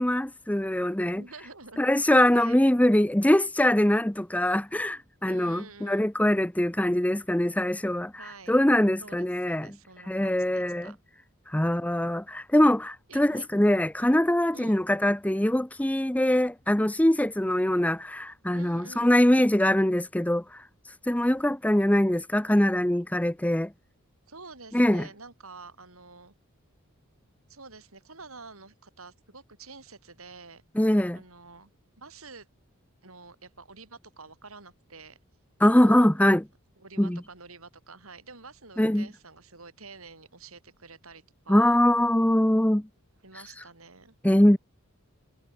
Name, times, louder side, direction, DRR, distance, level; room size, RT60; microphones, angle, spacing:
voice 1, 0.0-1.2 1.8-9.7 10.1-10.9 11.5-20.6 21.1-23.7 24.7-25.1 30.8-31.2 35.6-36.4 37.0-37.2 38.8-39.1 41.5-42.8 44.2-44.6, left 1 dB, 5° left, 0.7 m, -23 dB
voice 2, 1.0-1.8 2.3-2.6 5.2-6.1 8.2-8.5 9.0-11.0 13.1-13.5 14.5-14.8 18.5-19.1 24.3-26.3 27.5-30.6 31.1-31.7 32.0-32.5 33.0-35.2 35.6-36.1 36.8-41.8 43.2-44.1, right 4 dB, 85° right, 6.7 m, -48 dB
head